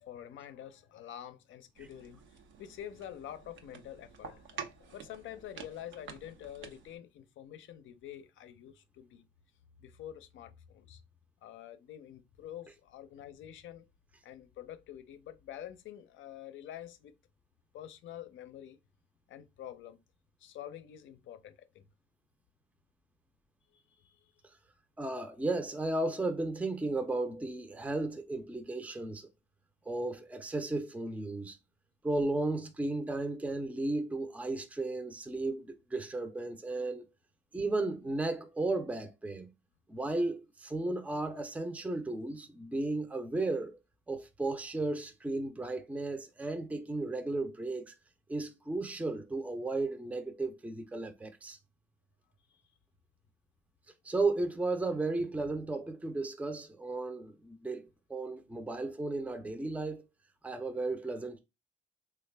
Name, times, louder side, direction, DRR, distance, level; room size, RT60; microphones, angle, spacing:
voice 1, 0.0-2.2 2.6-9.2 9.8-11.0 11.4-13.9 14.2-17.1 17.7-18.8 19.3-20.0 20.4-21.9 23.7-24.3 52.5-52.6, left 11 dB, 75° left, 0.5 m, -47 dB
sound 1, 1.8-7.0, right 7 dB, 75° right, 0.6 m, -49 dB
voice 2, 25.0-29.3 29.9-31.6 32.0-37.0 37.5-39.5 39.9-43.8 44.1-47.9 48.3-51.6 54.0-60.1 60.4-61.4, right 2 dB, 5° right, 0.5 m, -34 dB
3.2 x 2.3 x 3.3 m
cardioid pair, 90°, 20 cm